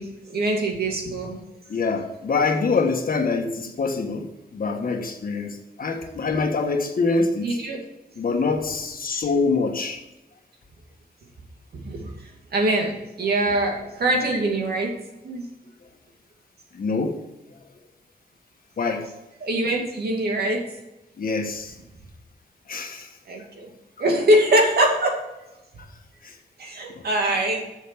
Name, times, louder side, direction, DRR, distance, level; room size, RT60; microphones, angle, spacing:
voice 1, 0.0-1.4 7.4-7.8 11.7-15.0 15.2-15.5 19.4-20.6 23.3-23.7 24.0-25.2 26.6-27.6, right 1 dB, 90° right, 0 dB, 2.4 m, -23 dB
voice 2, 1.7-7.5 8.2-10.0 16.7-17.2 18.8-19.1 21.2-21.7 22.7-23.1 26.2-26.3, left 4 dB, 65° left, 4 dB, 1.5 m, -25 dB
7.2 x 6.9 x 7.0 m, 0.98 s
wide cardioid pair, 105°, 16 cm